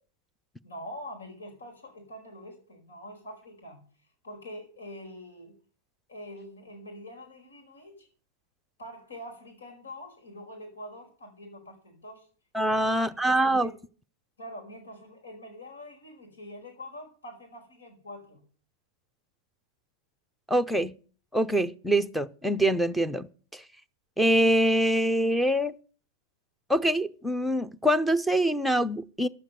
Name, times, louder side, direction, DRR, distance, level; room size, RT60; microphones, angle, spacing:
voice 1, 0.6-3.8 4.2-5.6 6.1-8.1 8.8-12.2 12.6-13.8 14.4-18.4, left 1 dB, 85° left, 5.0 m, -44 dB
voice 2, 12.5-13.7 20.5-20.9 21.3-23.3 23.5-23.6 24.2-25.7 26.7-29.3, right 1 dB, ahead, 0.7 m, -24 dB
11.5 x 7.4 x 8.1 m
hypercardioid pair, 105°, 0 cm